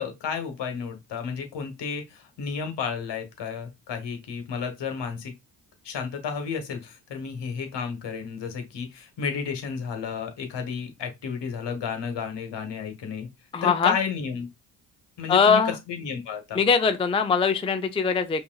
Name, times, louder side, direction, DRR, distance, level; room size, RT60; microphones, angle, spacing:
voice 1, 0.0-5.3 5.8-13.3 13.6-14.5 15.2-15.6 15.9-16.6, left 6 dB, 65° left, 1.3 m, -32 dB
voice 2, 13.5-14.0 15.3-15.7 16.5-18.4, left 5 dB, 15° left, 0.4 m, -21 dB
5.3 x 2.7 x 2.3 m
supercardioid pair, 55°, 46 cm